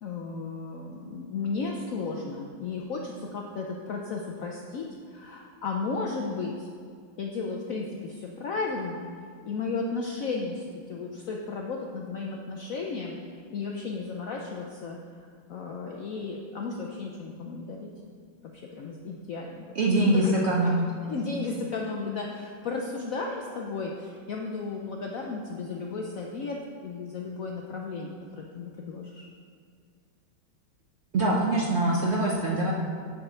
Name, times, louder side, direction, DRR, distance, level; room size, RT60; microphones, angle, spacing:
voice 1, 0.0-6.7 7.2-9.1 9.4-15.0 15.5-17.9 18.5-20.3 20.6-26.6 26.8-29.2, left 4 dB, 70° left, 0 dB, 0.8 m, -34 dB
voice 2, 19.8-20.9 31.1-32.7, right 1 dB, 55° right, -4 dB, 0.7 m, -23 dB
8.9 x 4.2 x 5.5 m, 2.1 s
omnidirectional pair, 2.1 m